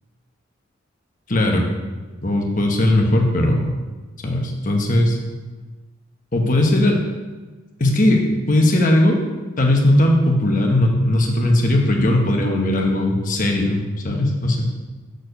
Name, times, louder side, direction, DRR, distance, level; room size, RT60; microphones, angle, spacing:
voice 1, 1.3-1.7 2.2-3.7 4.2-5.2 6.3-7.0 7.8-9.2 9.6-14.7, left 1 dB, 45° left, 1 dB, 1.1 m, -18 dB
6.4 x 4.5 x 6.6 m, 1.3 s
head